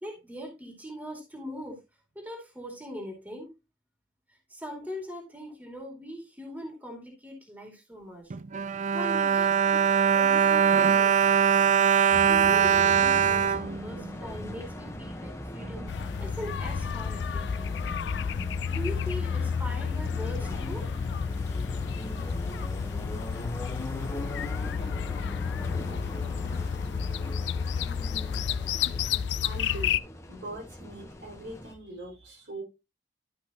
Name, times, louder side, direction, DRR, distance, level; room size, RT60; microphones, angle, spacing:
voice 1, 0.0-1.8 2.1-3.5 4.5-8.4 8.9-11.4 12.3-15.9 16.2-17.8 18.7-20.9, equal, 10° right, 1 dB, 2.4 m, -41 dB
Bowed string instrument, 8.3-14.5 15.2-15.3 15.6-15.8, right 7 dB, 40° right, 0.4 m, -22 dB
sound 1, 12.1-31.7, left 1 dB, 15° left, 1.1 m, -40 dB
sound 2, 15.9-30.0, left 7 dB, 70° left, 0.3 m, -31 dB
voice 2, 29.4-30.0 30.3-32.6, right 2 dB, 70° right, -2 dB, 4.7 m, -41 dB
12.5 x 5.5 x 2.9 m, 0.25 s
head